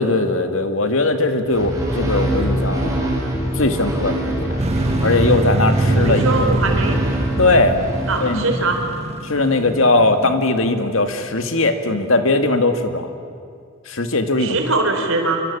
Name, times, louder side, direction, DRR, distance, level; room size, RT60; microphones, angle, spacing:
voice 1, 0.0-2.9 3.6-4.5 5.0-6.2 7.4-7.8 8.2-8.5 9.2-13.1 13.9-14.6, left 2 dB, 75° left, 7 dB, 2.2 m, -19 dB
sound 1, 1.5-8.9, right 1 dB, 15° right, 6.6 m, -23 dB
sound 2, 4.6-10.8, right 1 dB, 30° right, 1.2 m, -23 dB
voice 2, 5.9-7.0 8.1-8.8 14.4-15.4, right 3 dB, 85° right, 4 dB, 4.7 m, -21 dB
27.5 x 25.0 x 8.7 m, 2.2 s
head